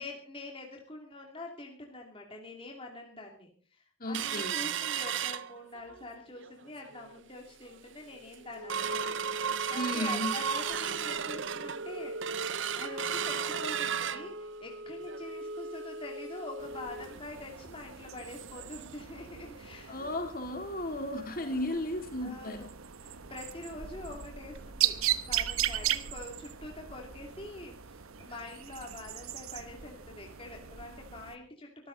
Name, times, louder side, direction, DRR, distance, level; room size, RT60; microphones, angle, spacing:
voice 1, 0.0-12.3 12.8-20.1 21.0-21.7 22.2-22.7 23.0-31.9, left 2 dB, 25° left, 1 dB, 2.6 m, -45 dB
voice 2, 4.0-4.6 9.7-10.3 19.9-22.7, left 1 dB, 40° left, 5 dB, 3.1 m, -34 dB
sound 1, 4.1-6.0 6.4-6.5 6.9-7.2 7.7-7.8 8.1-18.7 19.0-19.1 19.4-19.6 20.1-20.2, right 6 dB, 60° right, 0.7 m, -35 dB
sound 2, 16.6-31.4, right 11 dB, 85° right, 1.0 m, -37 dB
23.5 x 14.5 x 4.0 m, 0.43 s
head